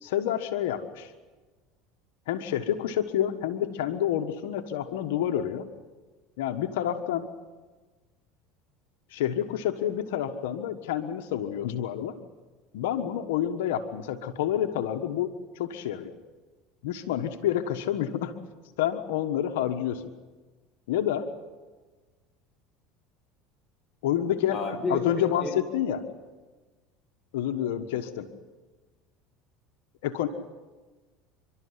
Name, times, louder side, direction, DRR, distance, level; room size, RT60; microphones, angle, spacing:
voice 1, 0.0-1.1 2.3-5.7 6.4-7.3 9.1-12.1 12.7-16.1 16.8-18.3 18.8-20.1 20.9-21.3 24.0-26.0 27.3-28.3 30.0-30.3, left 10 dB, 85° left, 6 dB, 1.4 m, -28 dB
voice 2, 24.5-25.5, left 3 dB, 15° left, 1 dB, 6.1 m, -32 dB
29.5 x 12.5 x 9.7 m, 1.3 s
supercardioid pair, 110°, 0 cm